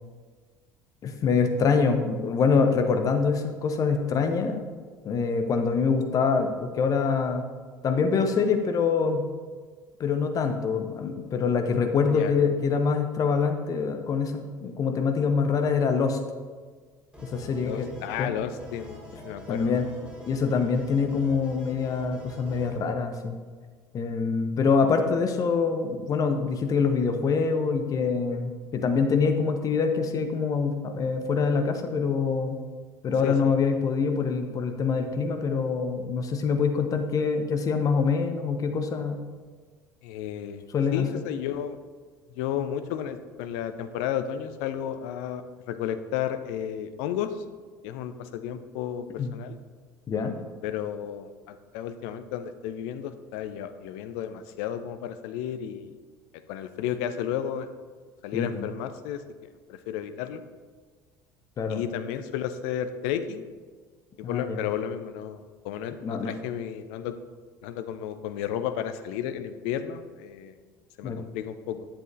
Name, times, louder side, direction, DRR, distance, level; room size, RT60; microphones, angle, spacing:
voice 1, 1.0-4.6 5.0-7.4 7.8-9.2 10.0-16.2 17.2-17.9 18.2-18.3 19.5-19.9 20.3-23.4 23.9-32.6 33.0-39.2 40.7-41.1 49.2-49.4 50.1-50.3 58.3-58.7 61.6-61.8 64.2-64.6 66.0-66.3 71.0-71.2, left 5 dB, 35° left, 5 dB, 1.0 m, -25 dB
voice 2, 12.1-12.4 17.6-19.8 33.2-33.5 40.0-40.6 40.9-41.8 42.4-47.4 47.8-49.1 49.3-49.6 50.6-56.0 56.5-57.7 58.2-59.2 59.7-60.4 61.7-63.4 64.3-67.1 67.6-70.5 71.0-71.9, left 9 dB, 60° left, 10 dB, 0.5 m, -33 dB
sound 1, 17.1-22.8, equal, 10° right, 2.5 m, -45 dB
11.0 x 7.6 x 2.6 m, 1.5 s
figure-of-eight pair, 65°, 10 cm